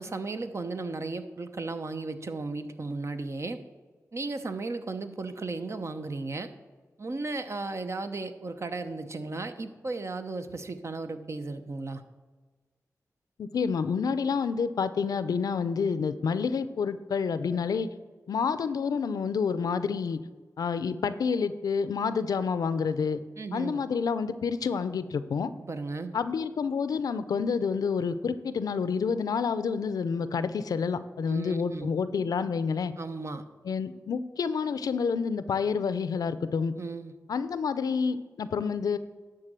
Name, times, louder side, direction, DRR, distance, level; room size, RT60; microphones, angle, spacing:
voice 1, 0.0-3.6 4.1-6.5 7.0-12.0 23.4-23.8 25.6-26.1 31.3-31.9 33.0-33.4 36.8-37.1, right 3 dB, 50° right, 9 dB, 0.8 m, -35 dB
voice 2, 13.4-17.9 18.3-20.2 20.6-23.2 23.5-25.5 26.1-32.9 33.6-36.7 37.3-39.0, left 5 dB, 85° left, 13 dB, 0.5 m, -28 dB
11.5 x 3.9 x 7.5 m, 1.4 s
cardioid pair, 60°, 6 cm